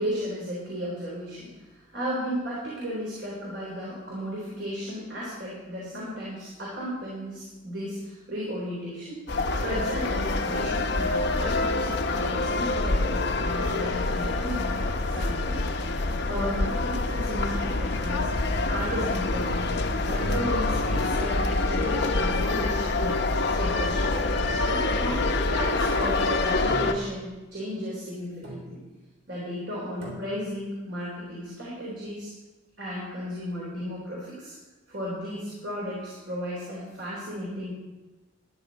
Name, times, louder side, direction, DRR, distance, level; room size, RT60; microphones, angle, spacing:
voice 1, 0.0-1.5 1.9-9.2 9.6-11.9 12.1-15.6 16.3-18.4 18.7-19.6 20.0-23.2 23.5-24.1 24.7-28.8 29.3-32.3 32.8-34.5 34.9-37.7, equal, 60° right, -6 dB, 3.5 m, -34 dB
sound 1, 9.3-26.9, left 2 dB, 60° left, 0.8 m, -26 dB
sound 2, 24.4-25.6 26.7-27.5 28.4-29.0 30.0-30.7, right 1 dB, 75° right, 3.6 m, -42 dB
13.0 x 10.5 x 4.0 m, 1.1 s
head